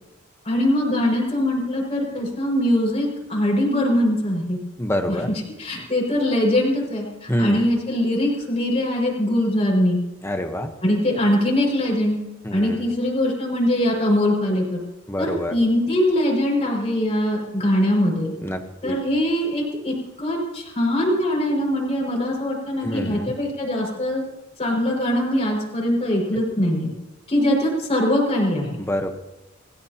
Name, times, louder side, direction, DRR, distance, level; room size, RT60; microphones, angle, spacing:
voice 1, 0.4-4.6 5.1-5.2 5.6-10.0 10.8-12.2 12.5-14.8 15.2-18.3 18.8-24.2 24.6-26.9 27.3-28.7, left 1 dB, 30° left, -2 dB, 5.9 m, -22 dB
voice 2, 4.8-5.3 7.3-7.7 10.2-10.7 12.4-12.8 15.1-15.5 18.4-19.0 22.8-23.3 28.8-29.1, equal, 10° left, 5 dB, 1.1 m, -26 dB
29.0 x 15.5 x 3.0 m, 1.0 s
head